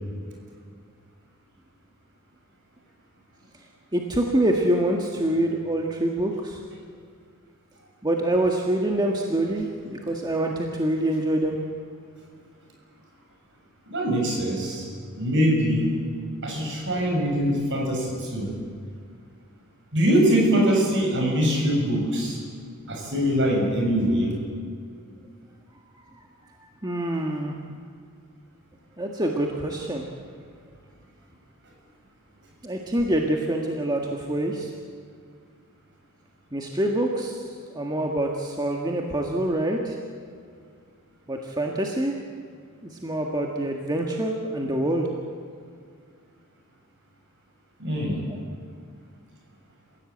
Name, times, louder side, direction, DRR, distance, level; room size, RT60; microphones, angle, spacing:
voice 1, 3.9-6.6 8.0-11.6 26.8-27.6 29.0-30.1 32.6-34.7 36.5-37.4 37.7-40.0 41.3-42.2 42.8-45.1, right 1 dB, 20° right, 1 dB, 1.7 m, -25 dB
voice 2, 13.9-14.9 15.1-15.9 16.4-18.5 19.9-22.4 22.9-24.3 47.8-48.2, equal, 55° right, 0 dB, 6.9 m, -23 dB
28.5 x 16.0 x 8.7 m, 2.1 s
head